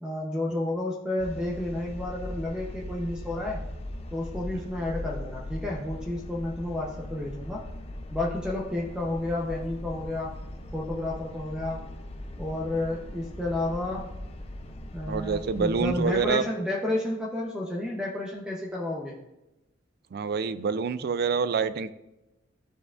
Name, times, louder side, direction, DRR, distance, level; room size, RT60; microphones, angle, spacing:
voice 1, 0.0-3.7 4.1-7.6 8.1-10.3 10.7-11.8 12.4-14.1 14.9-19.2, left 1 dB, 5° right, -3 dB, 0.8 m, -31 dB
sound 1, 1.2-16.3, left 1 dB, 30° left, 0.5 m, -40 dB
voice 2, 15.1-16.4 20.1-21.9, right 5 dB, 50° right, 14 dB, 0.4 m, -27 dB
13.5 x 4.9 x 2.5 m, 0.96 s
head